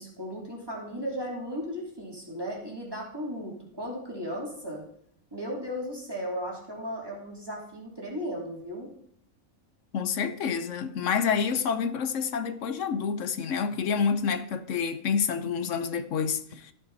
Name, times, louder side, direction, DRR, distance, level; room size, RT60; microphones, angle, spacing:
voice 1, 0.0-4.8 5.3-8.9, equal, 15° right, 2.9 m, -36 dB
voice 2, 9.9-16.7, left 6 dB, 65° left, 1.1 m, -28 dB
13.5 x 8.6 x 4.0 m
omnidirectional pair, 1.5 m